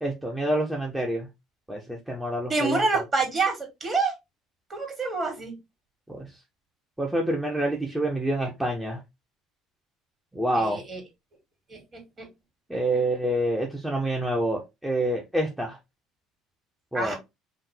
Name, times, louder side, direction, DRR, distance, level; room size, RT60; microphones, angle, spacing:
voice 1, 0.0-1.3 1.7-3.0 6.1-6.3 7.0-9.0 10.3-10.8 12.7-15.8 16.9-17.1, right 1 dB, 5° right, 1.1 m, -27 dB
voice 2, 2.5-4.1 4.7-5.5 10.5-11.0 11.7-12.3 16.9-17.2, right 3 dB, 30° right, 2.3 m, -27 dB
5.6 x 2.6 x 3.3 m
figure-of-eight pair, 60°, 0 cm